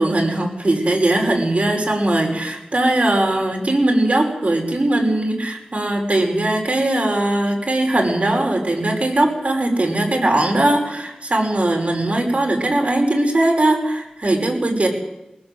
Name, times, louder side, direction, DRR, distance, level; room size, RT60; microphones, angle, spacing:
voice 1, 0.0-14.9, right 1 dB, 55° right, 1 dB, 5.6 m, -19 dB
21.5 x 19.0 x 8.0 m, 0.98 s
wide cardioid pair, 50°, 3 cm